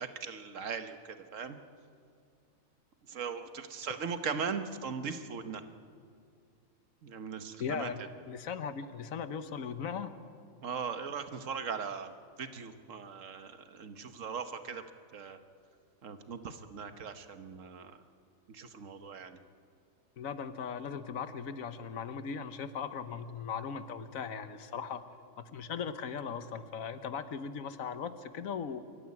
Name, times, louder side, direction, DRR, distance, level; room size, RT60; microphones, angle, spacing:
voice 1, 0.0-1.6 3.1-5.6 7.0-7.9 10.6-12.1 12.4-14.8 15.1-15.4 16.0-17.9 18.5-19.4, right 6 dB, 70° right, 9 dB, 1.5 m, -39 dB
voice 2, 7.6-8.0 8.3-10.1 20.2-25.0 25.4-28.8, left 6 dB, 85° left, 11 dB, 1.4 m, -38 dB
24.0 x 13.5 x 9.7 m, 2.3 s
omnidirectional pair, 1.4 m